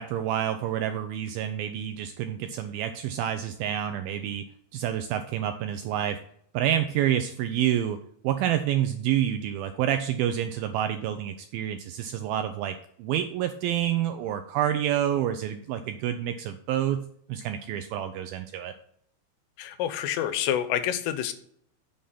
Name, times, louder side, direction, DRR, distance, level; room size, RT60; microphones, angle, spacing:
voice 1, 0.0-4.4 4.7-6.2 6.5-18.7, right 11 dB, 85° right, 8 dB, 2.1 m, -28 dB
voice 2, 19.6-21.3, left 10 dB, 85° left, 11 dB, 3.0 m, -28 dB
7.0 x 6.4 x 5.7 m, 0.65 s
omnidirectional pair, 4.8 m